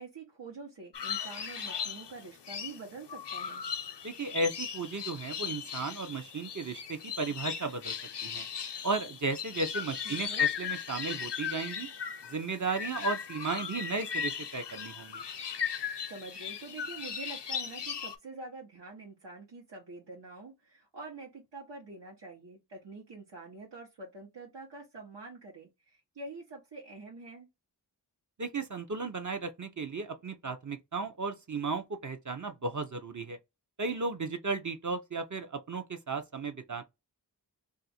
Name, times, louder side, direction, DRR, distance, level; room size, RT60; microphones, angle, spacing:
voice 1, 0.0-3.6 10.0-10.5 16.1-27.5, right 3 dB, 80° right, 1.1 m, -46 dB
sound 1, 0.9-18.1, left 8 dB, 75° left, 0.6 m, -37 dB
voice 2, 4.0-7.9 8.2-8.5 8.8-11.9 12.3-15.2 28.4-33.4 33.8-36.8, right 3 dB, 45° right, 0.6 m, -35 dB
2.5 x 2.4 x 4.1 m
wide cardioid pair, 55°, 42 cm